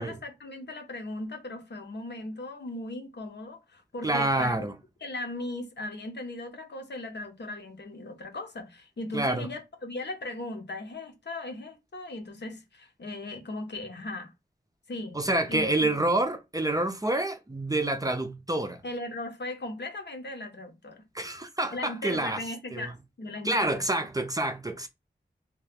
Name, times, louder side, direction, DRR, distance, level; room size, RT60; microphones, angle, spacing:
voice 1, 0.0-4.6 5.0-14.3 14.9-15.9 18.8-21.0 21.7-24.0, left 2 dB, 70° left, 0.8 m, -38 dB
voice 2, 4.0-4.7 9.1-9.5 15.1-18.8 21.1-22.4 22.7-22.9 23.4-24.9, right 2 dB, 20° right, 0.5 m, -27 dB
2.8 x 2.2 x 3.3 m
wide cardioid pair, 80°, 19 cm